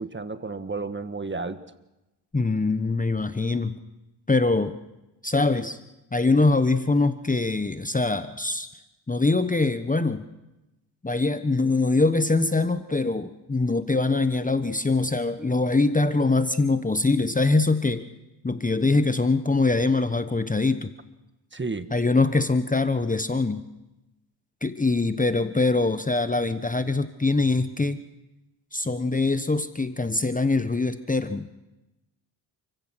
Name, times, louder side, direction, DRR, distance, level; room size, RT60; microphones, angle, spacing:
voice 1, 0.0-1.6 21.5-21.9, right 3 dB, 25° right, 11 dB, 1.5 m, -32 dB
voice 2, 2.3-3.8 4.3-4.8 5.2-5.8 6.1-8.7 9.1-10.2 11.0-18.0 18.4-20.9 21.9-23.7 24.6-28.0 28.7-31.5, left 3 dB, 15° left, 11 dB, 1.1 m, -23 dB
29.0 x 16.0 x 6.2 m, 0.98 s
supercardioid pair, 60°, 47 cm